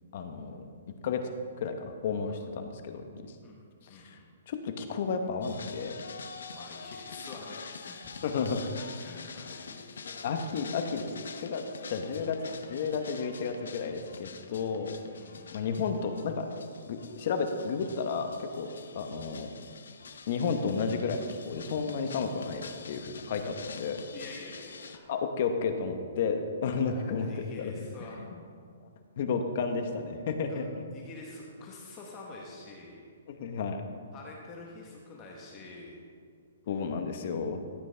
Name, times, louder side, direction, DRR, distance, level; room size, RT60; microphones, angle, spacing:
voice 1, 0.1-0.7 1.0-1.2 1.6-3.3 3.9-4.2 4.5-6.0 8.2-8.6 10.2-15.0 15.5-16.5 16.9-19.5 20.3-24.0 25.1-27.7 28.1-28.4 29.2-30.7 33.3-33.8 36.7-37.6, left 5 dB, 50° left, 6 dB, 0.9 m, -32 dB
voice 2, 3.9-4.3 6.5-8.3 8.6-10.4 15.2-15.5 24.1-25.1 26.8-28.3 30.5-30.6 30.9-33.0 34.1-36.0, left 2 dB, 25° left, -2 dB, 1.1 m, -47 dB
sound 1, 5.4-25.0, left 5 dB, 85° left, 0.7 m, -46 dB
13.5 x 8.0 x 3.4 m, 2.1 s
hypercardioid pair, 160°, 0 cm